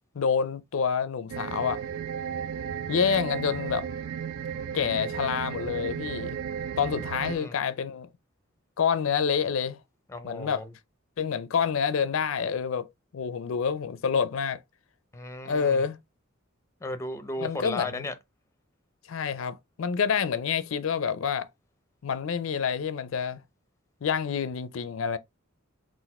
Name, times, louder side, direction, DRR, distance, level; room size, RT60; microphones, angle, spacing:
voice 1, 0.2-1.8 2.9-3.9 4.7-6.4 6.8-8.1 8.8-9.8 10.2-10.6 11.2-12.9 13.1-14.6 15.4-16.0 17.4-18.0 19.1-21.5 22.0-23.4 24.0-25.2, left 6 dB, 70° left, 0.4 m, -27 dB
sound 1, 1.3-7.4, right 8 dB, 85° right, 0.4 m, -34 dB
voice 2, 7.1-7.6 10.1-10.7 15.1-15.8 16.8-18.1, left 2 dB, 15° left, 0.5 m, -35 dB
4.0 x 2.5 x 4.1 m
head